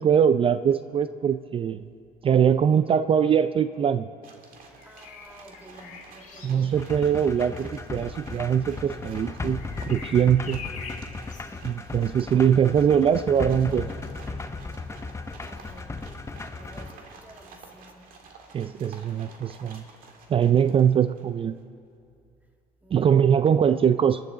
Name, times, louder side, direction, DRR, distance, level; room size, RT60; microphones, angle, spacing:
voice 1, 0.0-1.9 2.2-4.1 6.4-10.6 11.6-13.9 18.5-19.8 20.3-21.6 22.9-24.2, right 8 dB, 35° right, 13 dB, 0.4 m, -22 dB
sound 1, 4.2-21.4, right 4 dB, 65° right, 1.9 m, -50 dB
Bird vocalization bird call bird song, 4.7-16.5 18.2-18.4, left 6 dB, 55° left, 2.2 m, -47 dB
voice 2, 4.8-6.9 11.3-11.8 15.4-18.2 22.8-23.3, equal, 10° right, 2 dB, 2.0 m, -51 dB
sound 2, 6.7-16.9, left 3 dB, 20° left, 0.7 m, -36 dB
24.0 x 11.0 x 3.9 m, 2.4 s
supercardioid pair, 80°, 15 cm